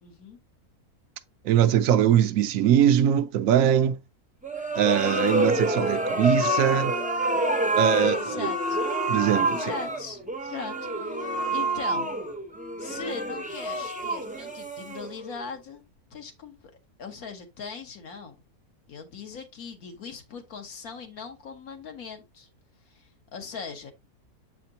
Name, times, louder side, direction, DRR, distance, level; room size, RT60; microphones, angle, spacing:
voice 1, 0.0-0.4 8.0-8.8 9.4-10.2 10.5-12.1 12.8-15.8 16.1-16.7 17.0-18.4 18.9-22.5 22.8-23.9, left 5 dB, 70° left, 1.6 m, -39 dB
voice 2, 1.4-4.0 4.8-7.0 7.8-8.5 9.1-9.7, right 9 dB, 70° right, 0.9 m, -22 dB
sound 1, 4.4-15.4, right 1 dB, 10° right, 0.5 m, -27 dB
7.7 x 5.0 x 2.8 m
omnidirectional pair, 1.6 m